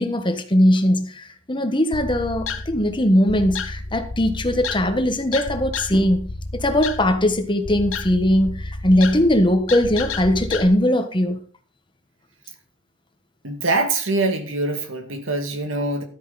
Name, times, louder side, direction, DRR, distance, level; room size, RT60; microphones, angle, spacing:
voice 1, 0.0-11.4, left 1 dB, 25° left, 7 dB, 1.3 m, -20 dB
sound 1, 1.9-10.6, left 3 dB, 85° left, 1.3 m, -32 dB
voice 2, 13.4-16.0, right 2 dB, 85° right, 6 dB, 2.2 m, -24 dB
13.0 x 9.2 x 4.2 m, 0.41 s
head